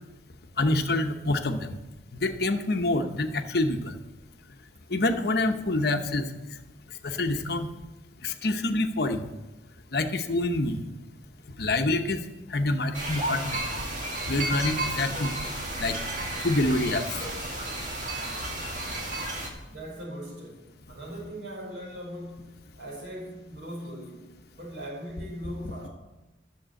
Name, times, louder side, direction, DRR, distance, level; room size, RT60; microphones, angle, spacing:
voice 1, 0.6-1.6 2.2-3.9 4.9-6.2 7.0-7.7 8.2-9.2 9.9-10.8 11.6-12.2 12.5-13.6 14.2-15.3 15.8-16.0 16.4-17.0, left 2 dB, 55° left, 0.9 m, -26 dB
sound 1, 12.9-19.5, right 1 dB, 40° right, 2.1 m, -32 dB
voice 2, 19.5-25.9, equal, 60° right, 5.1 m, -40 dB
11.5 x 7.3 x 7.6 m
head